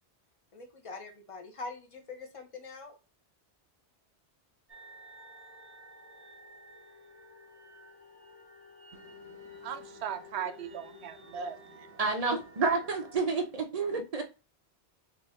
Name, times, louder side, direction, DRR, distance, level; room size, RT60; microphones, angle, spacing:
voice 1, 0.5-3.0, left 3 dB, 35° left, 0.6 m, -43 dB
sound 1, 4.7-13.2, left 2 dB, 15° right, 0.8 m, -52 dB
voice 2, 9.6-11.9 12.6-12.7, right 7 dB, 75° right, 0.8 m, -37 dB
voice 3, 12.0-14.2, right 4 dB, 50° right, 0.5 m, -29 dB
3.2 x 2.5 x 4.1 m
omnidirectional pair, 1.1 m